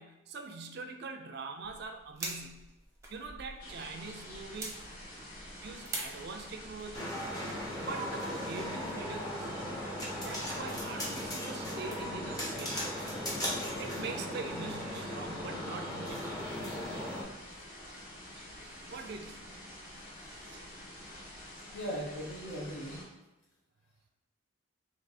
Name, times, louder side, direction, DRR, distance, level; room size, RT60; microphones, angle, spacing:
voice 1, 0.0-2.7 3.1-4.8 5.6-7.1 7.5-10.0 10.2-13.1 13.8-16.4 17.8-17.9 18.9-19.4 20.3-20.6, right 4 dB, 50° right, 6 dB, 0.4 m, -44 dB
sound 1, 1.6-7.0, right 2 dB, 15° right, 0.7 m, -45 dB
sound 2, 3.6-23.0, left 1 dB, 40° left, 1.4 m, -48 dB
sound 3, 6.9-17.2, equal, 20° left, 0.8 m, -37 dB
voice 2, 21.7-23.1, equal, 70° left, -4 dB, 1.4 m, -38 dB
3.4 x 3.1 x 4.1 m, 1.0 s
head